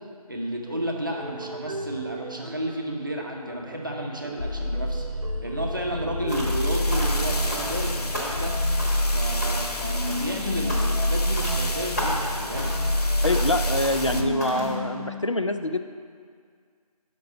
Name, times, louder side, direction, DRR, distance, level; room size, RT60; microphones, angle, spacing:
voice 1, 0.3-5.1 5.4-8.5 9.1-12.7, right 1 dB, 35° right, -1 dB, 0.7 m, -32 dB
sound 1, 0.6-6.9 7.3-15.3, equal, 85° right, 0.9 m, -38 dB
sound 2, 4.4-14.2, left 1 dB, 85° left, 0.9 m, -26 dB
sound 3, 6.3-6.6 6.9-7.9 8.1-8.5 8.8-9.1 9.4-9.8 10.0-10.3 10.7-11.1 11.4-11.6 12.0-12.3 12.6-12.9 13.2-13.5 13.8-14.1 14.4-14.7, equal, 25° left, 1.0 m, -34 dB
voice 2, 13.2-15.8, left 2 dB, 50° left, 8 dB, 0.4 m, -25 dB
6.6 x 5.3 x 5.6 m, 2.1 s
figure-of-eight pair, 180°, 20 cm